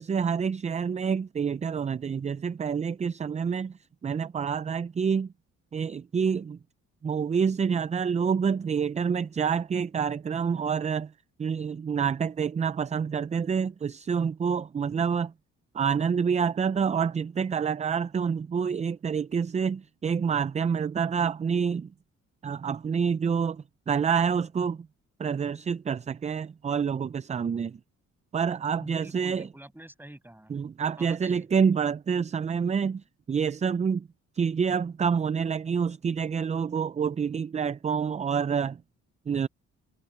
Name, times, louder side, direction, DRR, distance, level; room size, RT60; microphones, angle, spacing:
voice 1, 0.0-5.3 5.7-6.6 7.0-11.1 11.4-15.3 15.7-21.9 22.4-24.9 25.2-27.8 28.3-29.5 30.5-34.1 34.3-38.8 39.3-39.5, right 6 dB, 25° right, 0.4 m, -27 dB
voice 2, 28.7-30.5 31.0-31.5, right 1 dB, 5° right, 7.1 m, -46 dB
cardioid pair, 90°, 30 cm